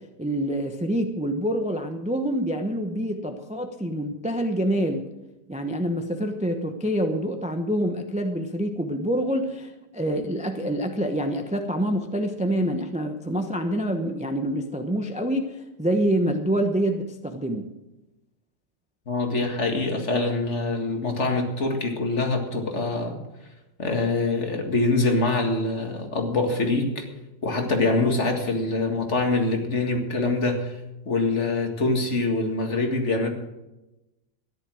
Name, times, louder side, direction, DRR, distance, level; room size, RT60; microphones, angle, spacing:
voice 1, 0.2-5.1 5.5-17.7, equal, 5° right, 5 dB, 0.5 m, -26 dB
voice 2, 19.1-23.2 23.8-27.0 27.4-30.8 31.1-33.3, left 3 dB, 40° left, 3 dB, 2.1 m, -24 dB
13.5 x 11.5 x 6.3 m, 0.99 s
omnidirectional pair, 1.9 m